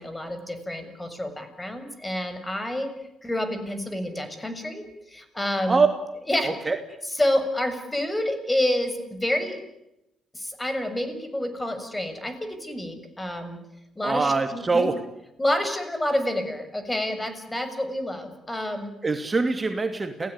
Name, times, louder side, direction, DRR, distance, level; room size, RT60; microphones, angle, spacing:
voice 1, 0.0-2.9 3.2-5.8 6.3-6.5 7.2-9.6 10.3-13.6 14.0-14.9 15.4-18.9, left 1 dB, 15° left, 9 dB, 7.0 m, -28 dB
voice 2, 6.4-6.8 14.0-14.9 19.0-20.3, right 4 dB, 30° right, 7 dB, 2.7 m, -23 dB
29.0 x 18.0 x 9.8 m, 0.88 s
hypercardioid pair, 45°, 0 cm